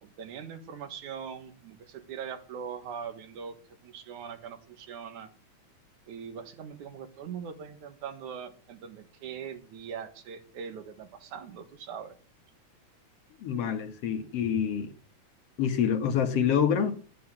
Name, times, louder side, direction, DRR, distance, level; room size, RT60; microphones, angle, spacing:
voice 1, 0.0-5.3 6.1-12.2, right 7 dB, 85° right, 3.0 m, -41 dB
voice 2, 13.4-14.9 15.6-16.9, left 8 dB, 60° left, 2.2 m, -26 dB
12.5 x 7.7 x 7.2 m
omnidirectional pair, 3.3 m